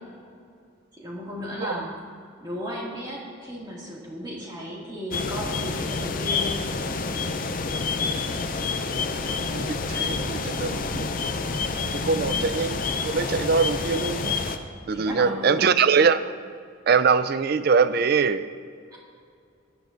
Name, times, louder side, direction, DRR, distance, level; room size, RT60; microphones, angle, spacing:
voice 1, 0.9-1.9 2.4-6.6 12.1-12.5 14.9-15.8 18.9-19.0, equal, 20° right, -5 dB, 2.1 m, -35 dB
sound 1, 5.1-14.6, left 4 dB, 40° left, 0.5 m, -28 dB
voice 2, 9.3-11.1 11.9-14.4 14.9-16.2 16.9-18.5, right 5 dB, 50° right, 13 dB, 0.4 m, -23 dB
16.0 x 11.0 x 2.6 m, 2.3 s
head